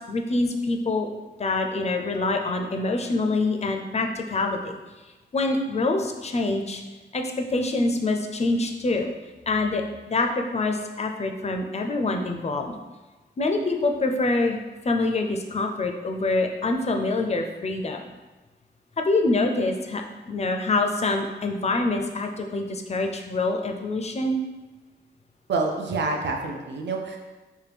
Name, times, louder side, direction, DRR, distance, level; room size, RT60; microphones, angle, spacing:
voice 1, 0.1-1.1 1.4-4.7 5.3-6.8 7.1-9.1 9.5-12.8 13.4-18.1 19.0-24.4, left 2 dB, 35° left, 4 dB, 0.4 m, -25 dB
voice 2, 25.5-27.2, right 3 dB, 75° right, 2 dB, 0.4 m, -27 dB
4.3 x 2.2 x 3.4 m, 1.2 s
wide cardioid pair, 105°, 18 cm